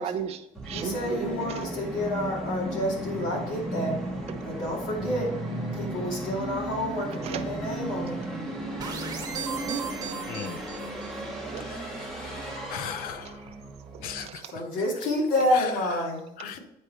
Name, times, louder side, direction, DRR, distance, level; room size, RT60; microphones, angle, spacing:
voice 1, 0.0-1.8 4.3-4.4 7.2-7.5 9.5-9.8 11.3-11.7 12.0-12.1 13.9-14.5, right 8 dB, 45° right, 6 dB, 0.6 m, -36 dB
Musical instrument, 0.5-14.3, right 1 dB, 5° left, 1.1 m, -35 dB
voice 2, 0.7-4.0 4.4-5.3 5.7-8.2 14.5-16.6, left 1 dB, 65° left, -2 dB, 2.7 m, -29 dB
sound 1, 8.8-11.2, right 7 dB, 25° right, 1.2 m, -37 dB
voice 3, 10.3-10.6 11.6-13.5 14.0-15.1 15.5-16.1 16.4-16.6, left 9 dB, 85° left, 10 dB, 0.7 m, -39 dB
8.1 x 5.1 x 4.4 m, 0.83 s
cardioid pair, 170°, 15 cm